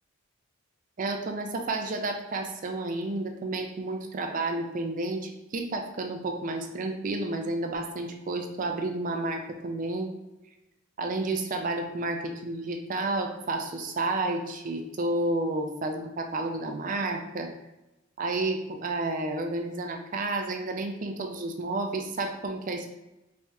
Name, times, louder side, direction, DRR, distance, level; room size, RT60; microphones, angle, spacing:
voice 1, 1.0-10.1 11.0-17.5 18.2-22.9, right 2 dB, 40° right, 4 dB, 0.4 m, -31 dB
3.4 x 3.2 x 2.8 m, 0.95 s
head